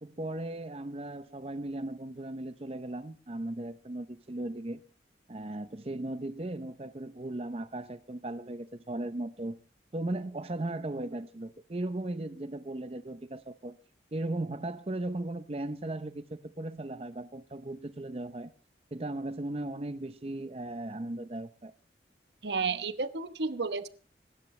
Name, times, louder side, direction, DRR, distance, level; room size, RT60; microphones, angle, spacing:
voice 1, 0.0-4.8 5.3-9.6 9.9-13.8 14.1-18.5 18.9-21.7, right 1 dB, 35° right, 0.6 m, -37 dB
voice 2, 22.4-23.9, right 4 dB, 80° right, 1.1 m, -32 dB
25.0 x 13.0 x 3.2 m
head